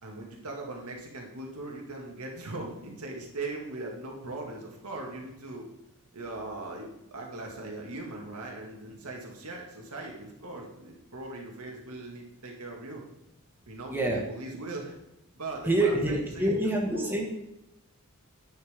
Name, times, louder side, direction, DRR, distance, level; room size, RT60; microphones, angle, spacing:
voice 1, 0.0-5.7 6.1-13.0 13.7-15.0 15.3-17.2, right 2 dB, 85° right, 0 dB, 2.3 m, -40 dB
voice 2, 13.9-14.2 15.7-17.2, right 1 dB, 10° right, -1 dB, 1.8 m, -26 dB
11.0 x 9.3 x 3.7 m, 0.92 s
head